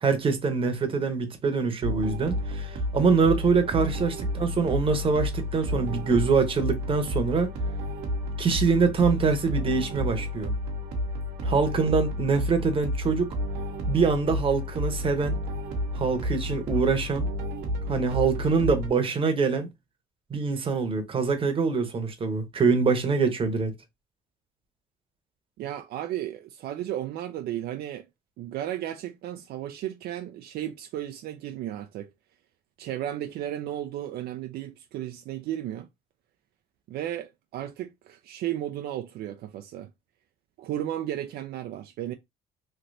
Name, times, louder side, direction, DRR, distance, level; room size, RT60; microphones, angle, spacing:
voice 1, 0.0-7.5 8.4-10.5 11.4-13.3 13.9-15.4 15.9-17.3 17.9-19.7 20.3-23.7, right 5 dB, 30° right, 0.9 m, -24 dB
sound 1, 1.8-18.9, left 1 dB, 85° right, 0.9 m, -31 dB
voice 2, 25.6-28.0 28.4-32.1 32.8-35.9 36.9-39.9 40.6-42.1, right 12 dB, 70° right, 0.4 m, -34 dB
3.2 x 2.8 x 2.6 m
cardioid pair, 110°, 17 cm